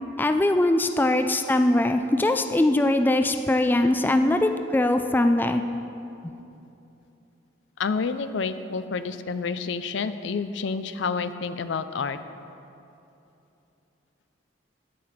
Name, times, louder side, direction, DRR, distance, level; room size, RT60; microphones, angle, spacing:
voice 1, 0.2-5.6, left 1 dB, 10° left, 7 dB, 0.3 m, -21 dB
voice 2, 4.0-4.5 5.7-5.8 7.8-12.2, left 5 dB, 75° left, 12 dB, 0.4 m, -29 dB
9.6 x 8.5 x 5.8 m, 2.8 s
head